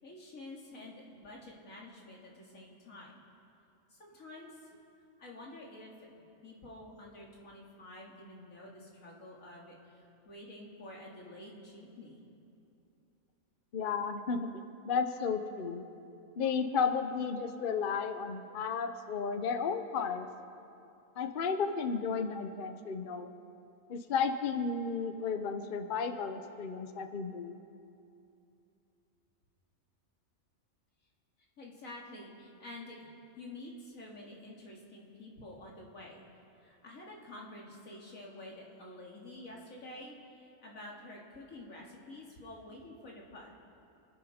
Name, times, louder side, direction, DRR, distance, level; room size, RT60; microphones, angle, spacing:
voice 1, 0.0-3.1 3.9-4.6 5.2-5.9 6.4-12.2 31.6-33.1 33.4-36.2 36.6-43.5, left 1 dB, 85° left, -3 dB, 2.7 m, -49 dB
voice 2, 13.7-14.5 14.8-15.9 16.4-20.3 21.2-23.3 23.9-27.6, left 5 dB, 45° left, 8 dB, 0.8 m, -33 dB
28.5 x 10.5 x 4.3 m, 2.7 s
omnidirectional pair, 1.4 m